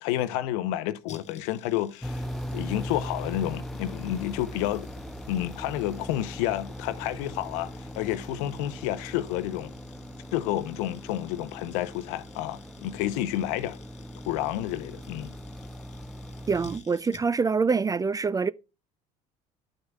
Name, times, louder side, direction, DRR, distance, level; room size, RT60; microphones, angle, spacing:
voice 1, 0.0-2.2 2.5-4.9 5.3-9.7 10.3-13.8 14.3-15.3, left 13 dB, 75° left, 0.7 m, -30 dB
sound 1, 1.1-17.6 17.8-17.9, left 4 dB, 40° left, 1.0 m, -51 dB
sound 2, 2.0-16.8, equal, ahead, 0.7 m, -40 dB
voice 2, 16.5-18.5, right 5 dB, 20° right, 0.3 m, -25 dB
11.5 x 6.2 x 2.3 m
hypercardioid pair, 70°, 19 cm